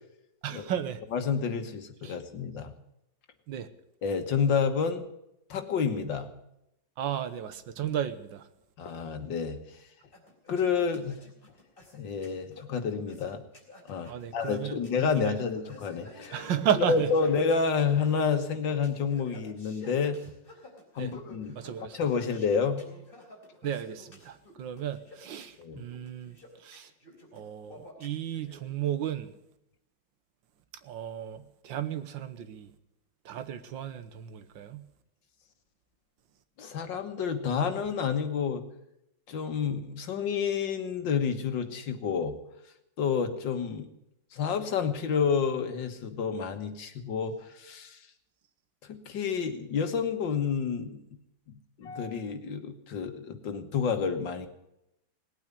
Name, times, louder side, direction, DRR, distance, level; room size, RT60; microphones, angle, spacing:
voice 1, 0.4-1.0 2.0-2.2 3.5-3.7 7.0-8.5 14.1-15.4 16.3-17.1 21.0-21.1 21.6-22.0 23.6-26.9 27.3-29.3 30.8-32.7 33.3-34.9, right 9 dB, 75° right, 1.7 m, -34 dB
voice 2, 1.1-2.7 4.0-5.1 5.5-6.3 8.8-9.6 10.5-11.2 11.9-13.4 13.9-16.3 16.9-20.2 21.0-21.6 21.9-22.8 25.6-25.8 36.6-38.6 39.3-42.3 43.0-43.9 44.3-48.0 48.9-51.0 51.8-54.5, left 6 dB, 70° left, 2.1 m, -29 dB
sound 1, 10.1-28.6, left 1 dB, 25° left, 4.0 m, -51 dB
18.5 x 9.1 x 8.3 m
omnidirectional pair, 2.1 m